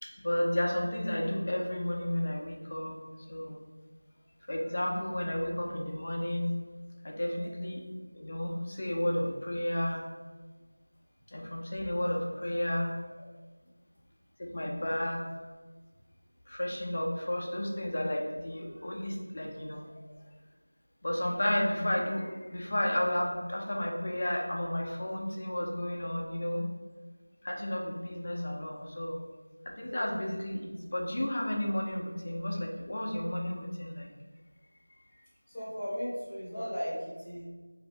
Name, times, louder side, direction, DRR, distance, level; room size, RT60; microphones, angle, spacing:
voice 1, 0.0-3.0 3.3-3.6 4.5-6.5 7.0-7.8 8.1-10.0 11.3-13.3 14.4-15.2 16.5-20.0 21.0-26.7 27.4-29.2 29.6-34.1, left 1 dB, 35° left, -1 dB, 0.5 m, -32 dB
voice 2, 35.5-37.4, equal, 10° left, -14 dB, 0.8 m, -36 dB
2.6 x 2.5 x 3.3 m, 1.3 s
figure-of-eight pair, 175°, 0 cm